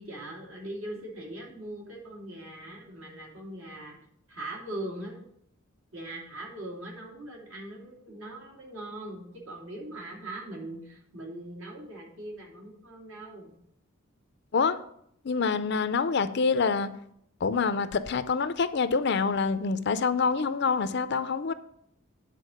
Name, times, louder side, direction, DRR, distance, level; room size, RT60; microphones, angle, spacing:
voice 1, 0.0-4.0 4.3-5.2 5.9-13.6, right 1 dB, 75° right, -2 dB, 2.9 m, -41 dB
voice 2, 15.2-16.9 17.4-21.5, left 5 dB, 55° left, 13 dB, 0.5 m, -26 dB
9.2 x 4.4 x 6.4 m, 0.70 s
head